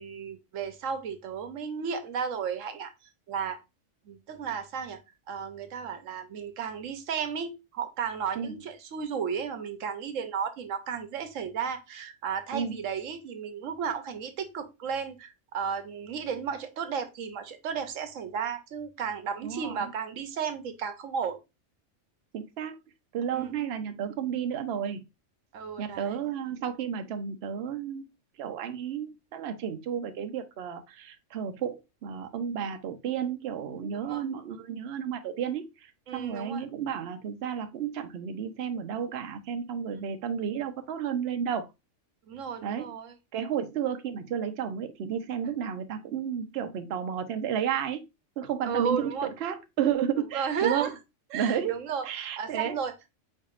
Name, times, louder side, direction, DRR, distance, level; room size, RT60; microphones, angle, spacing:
voice 1, 0.0-2.9 3.3-3.6 4.1-5.0 5.3-21.4 23.3-23.5 25.5-26.2 33.9-34.2 36.1-36.6 39.9-40.0 42.3-43.1 48.6-49.3 50.3-50.9 51.3-53.1, right 7 dB, 85° right, 1.1 m, -34 dB
voice 2, 19.4-19.9 22.3-22.8 23.1-25.0 25.8-28.1 28.4-31.8 32.0-35.6 36.1-41.7 42.6-42.9 43.3-48.0 48.4-50.9 51.3-51.8 52.0-52.8, right 8 dB, 60° right, 0.8 m, -32 dB
4.6 x 4.4 x 2.4 m
omnidirectional pair, 1.3 m